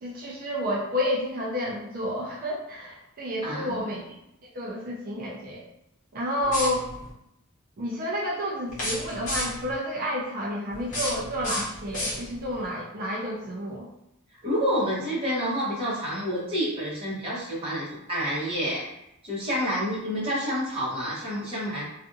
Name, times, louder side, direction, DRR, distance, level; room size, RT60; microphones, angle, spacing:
voice 1, 0.0-4.0 4.5-5.6 6.1-6.9 7.8-13.9, equal, 40° right, -4 dB, 0.4 m, -30 dB
voice 2, 3.4-3.9 14.4-18.8 19.2-22.0, equal, 25° right, -8 dB, 1.0 m, -28 dB
sound 1, 6.4-7.1 8.7-9.7 10.7-12.6, left 1 dB, 35° left, 0.9 m, -32 dB
2.5 x 2.4 x 2.6 m, 0.84 s
head